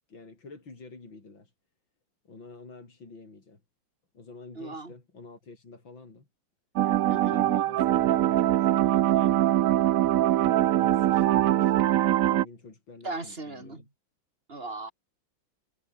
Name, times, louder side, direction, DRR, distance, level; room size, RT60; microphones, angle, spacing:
voice 1, 0.1-1.5 2.2-3.6 4.1-6.3 7.1-9.4 10.2-13.9, left 3 dB, 75° left, 5.6 m, -48 dB
voice 2, 4.6-4.9 7.1-7.4 13.0-13.8 14.5-14.9, right 2 dB, 30° right, 3.7 m, -37 dB
sound 1, 6.8-12.4, right 13 dB, 75° right, 0.8 m, -23 dB
omnidirectional pair, 2.1 m